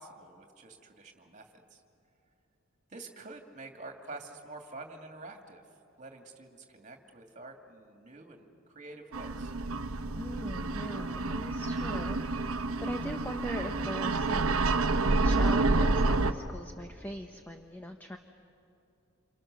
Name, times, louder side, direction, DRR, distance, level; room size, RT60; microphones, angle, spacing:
voice 1, 0.0-1.8 2.9-5.6 6.0-9.5, right 2 dB, 35° right, 3 dB, 2.4 m, -48 dB
sound 1, 9.1-16.3, right 3 dB, 85° right, 1.0 m, -29 dB
voice 2, 10.1-12.5 12.8-14.7 15.2-18.2, equal, 10° left, 4 dB, 0.9 m, -40 dB
28.5 x 28.0 x 6.7 m, 2.8 s
head